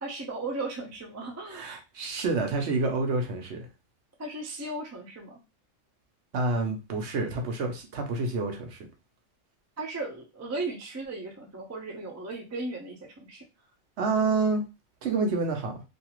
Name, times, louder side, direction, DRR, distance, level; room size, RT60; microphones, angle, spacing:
voice 1, 0.0-1.7 4.2-5.4 9.8-13.4, right 2 dB, 25° right, 0.3 m, -36 dB
voice 2, 1.5-3.7 6.3-8.9 14.0-14.6 15.0-15.8, right 3 dB, 65° right, 0.9 m, -28 dB
2.6 x 2.4 x 2.9 m
omnidirectional pair, 1.4 m